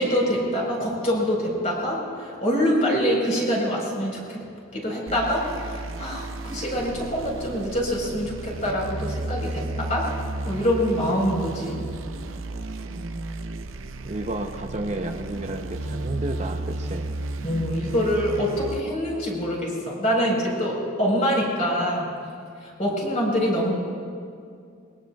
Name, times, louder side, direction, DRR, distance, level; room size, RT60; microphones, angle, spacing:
voice 1, 0.0-4.4 4.7-10.1 10.4-11.9 17.4-22.1 22.6-23.7, equal, 35° left, -3 dB, 4.2 m, -25 dB
sound 1, 5.1-18.8, right 2 dB, 80° right, 0.7 m, -33 dB
voice 2, 12.8-13.2 14.0-17.1, right 2 dB, 35° right, 4 dB, 0.6 m, -32 dB
21.5 x 21.5 x 2.3 m, 2.3 s
head